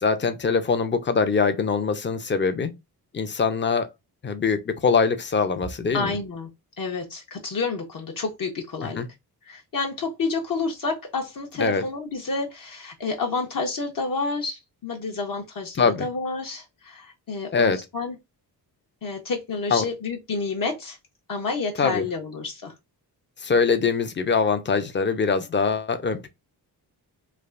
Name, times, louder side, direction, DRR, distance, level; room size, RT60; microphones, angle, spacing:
voice 1, 0.0-2.7 3.1-3.9 4.2-6.1 9.0-9.1 11.6-11.8 15.8-16.1 17.5-17.8 19.7-19.8 21.8-22.1 23.4-26.3, left 5 dB, 30° left, 0.5 m, -23 dB
voice 2, 5.9-6.5 6.8-9.0 9.4-18.2 19.0-21.0 21.3-22.7, left 4 dB, 55° left, 0.8 m, -29 dB
3.3 x 2.4 x 2.4 m
cardioid pair, 85°, 41 cm